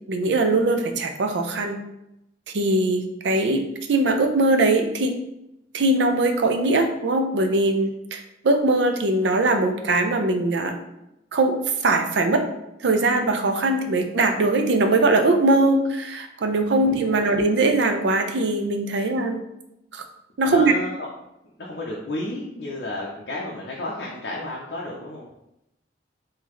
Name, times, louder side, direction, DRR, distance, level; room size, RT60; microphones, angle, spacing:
voice 1, 0.1-1.8 2.5-3.6 3.9-5.1 5.7-10.8 11.3-12.4 12.8-19.4 19.9-20.0 20.4-20.7, right 2 dB, 80° right, 5 dB, 0.5 m, -21 dB
voice 2, 16.7-17.2 18.9-19.1 20.5-20.9 21.6-25.3, left 2 dB, 60° left, -3 dB, 0.6 m, -32 dB
3.8 x 2.7 x 3.1 m, 0.85 s
head